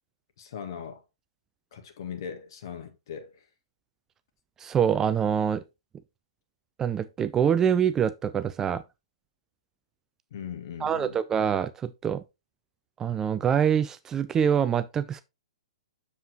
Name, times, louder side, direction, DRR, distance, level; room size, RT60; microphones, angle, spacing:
voice 1, 0.4-1.0 1.7-3.4 10.3-11.2, left 8 dB, 50° left, 1.7 m, -39 dB
voice 2, 4.6-5.6 6.8-8.8 10.8-12.2 13.0-15.2, right 8 dB, 15° right, 0.4 m, -25 dB
7.6 x 7.1 x 2.9 m
figure-of-eight pair, 115°, 3 cm